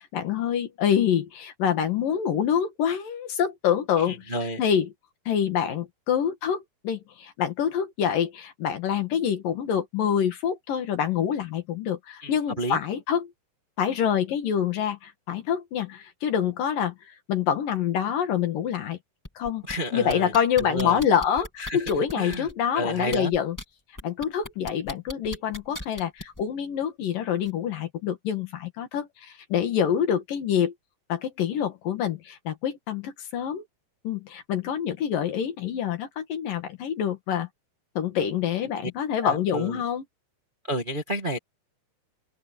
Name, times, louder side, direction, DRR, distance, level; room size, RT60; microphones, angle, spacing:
voice 1, 0.0-4.9 5.3-13.3 13.8-19.0 19.4-19.6 19.9-23.6 24.0-30.7 31.1-33.6 34.0-37.5 37.9-40.0, left 8 dB, 60° left, 3.3 m, -26 dB
voice 2, 4.1-4.6 12.2-12.8 19.7-20.3 20.6-21.0 21.6-21.8 22.2-22.5 22.7-23.3 39.2-39.8 40.7-41.4, right 1 dB, 25° right, 1.1 m, -30 dB
sound 1, 19.2-19.8 20.1-22.5 23.0-23.6 24.0-26.4 27.4-27.5, left 1 dB, 10° left, 0.8 m, -38 dB
open air
omnidirectional pair, 4.7 m